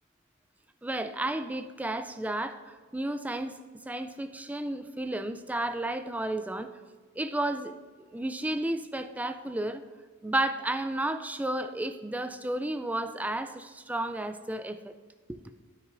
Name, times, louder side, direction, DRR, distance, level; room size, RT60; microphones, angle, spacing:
voice 1, 0.8-3.6 3.9-6.7 7.1-7.8 8.1-9.8 10.2-15.0 15.3-15.4, right 1 dB, 5° right, 10 dB, 0.3 m, -32 dB
9.9 x 8.6 x 2.6 m, 1.5 s
head